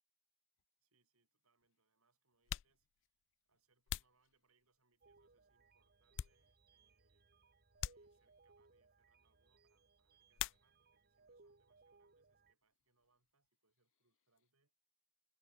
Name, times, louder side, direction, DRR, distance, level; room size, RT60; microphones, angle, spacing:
sound 1, 0.6-0.7 1.6-1.7 2.3-5.0 5.5-6.9 7.2-7.3 7.8-8.6 10.3-11.1 11.4-12.1 12.3-14.5, left 11 dB, 60° left, 0.3 m, -48 dB
voice 1, 0.8-7.3 7.9-14.7, right 3 dB, 70° right, 5.3 m, -82 dB
sound 2, 5.0-12.5, right 3 dB, 45° right, 1.8 m, -69 dB
head